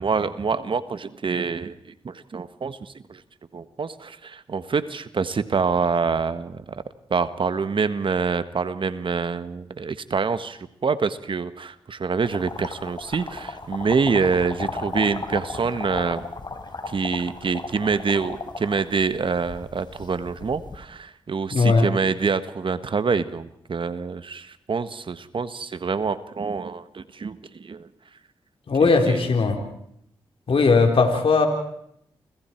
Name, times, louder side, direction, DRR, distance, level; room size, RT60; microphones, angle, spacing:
voice 1, 0.0-3.2 3.5-6.8 7.1-16.3 16.8-27.9 28.8-29.3, right 5 dB, 55° right, 12 dB, 1.5 m, -26 dB
sound 1, 12.2-20.8, left 3 dB, 50° left, 4.5 m, -35 dB
voice 2, 21.5-21.9 28.7-29.6 30.5-31.5, left 4 dB, 65° left, 4 dB, 3.9 m, -18 dB
29.5 x 25.0 x 4.6 m, 0.72 s
supercardioid pair, 45°, 10 cm